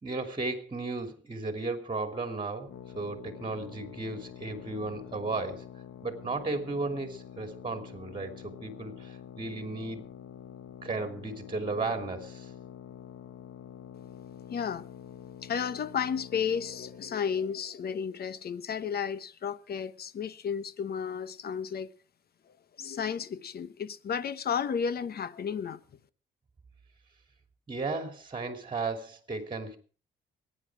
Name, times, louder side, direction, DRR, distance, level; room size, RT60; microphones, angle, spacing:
voice 1, 0.0-2.7 2.9-5.6 6.0-10.1 10.8-12.5 27.7-29.8, right 3 dB, 25° right, 2.8 m, -35 dB
sound 1, 2.7-17.2, left 9 dB, 85° left, 1.5 m, -47 dB
voice 2, 14.5-14.9 15.4-21.9 22.8-25.8, left 7 dB, 50° left, 1.1 m, -33 dB
22.0 x 9.9 x 4.8 m
cardioid pair, 90°, 20 cm